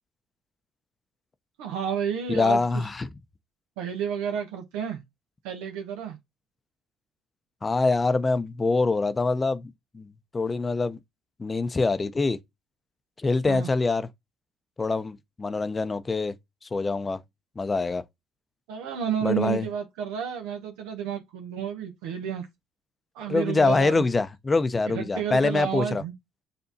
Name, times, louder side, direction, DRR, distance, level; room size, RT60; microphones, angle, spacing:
voice 1, 1.6-2.8 3.8-5.0 5.4-6.2 13.5-13.7 18.7-22.5 23.1-24.0 24.9-26.1, right 8 dB, 85° right, 0.7 m, -31 dB
voice 2, 2.3-3.1 7.6-10.1 10.3-11.0 11.4-12.4 13.2-14.1 14.8-16.3 16.6-17.2 17.6-18.0 19.2-19.7 23.3-26.0, left 3 dB, 25° left, 0.6 m, -25 dB
6.8 x 2.7 x 2.6 m
supercardioid pair, 70°, 0 cm